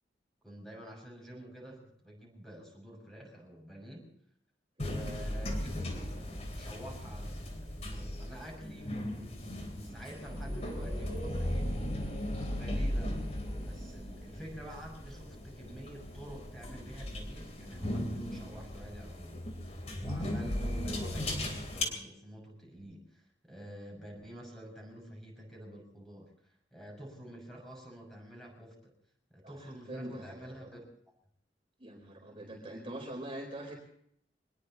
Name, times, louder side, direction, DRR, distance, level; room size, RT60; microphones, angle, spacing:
voice 1, 0.4-4.1 4.8-11.7 12.2-13.1 13.6-26.3 26.7-28.9 29.3-30.8, equal, ahead, 0 dB, 6.2 m, -48 dB
sound 1, 4.8-21.8, left 1 dB, 40° left, 3.4 m, -37 dB
voice 2, 29.4-30.7 31.8-33.7, right 1 dB, 30° right, 0 dB, 4.1 m, -44 dB
24.5 x 20.5 x 2.9 m, 0.65 s
head